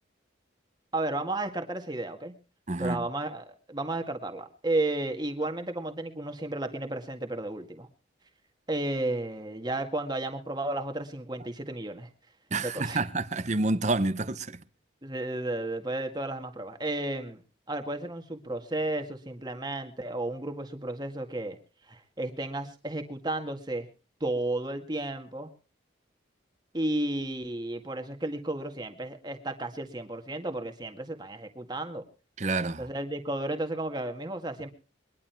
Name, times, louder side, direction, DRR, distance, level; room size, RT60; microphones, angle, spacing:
voice 1, 0.9-2.4 2.8-7.9 8.7-12.1 12.6-13.0 15.0-17.4 17.7-21.6 21.9-23.9 24.2-25.5 26.7-32.1 32.8-34.7, right 2 dB, 20° right, 1.9 m, -33 dB
voice 2, 2.7-3.0 12.5-14.6 32.4-32.8, right 2 dB, 40° right, 0.8 m, -28 dB
22.0 x 11.5 x 4.5 m
head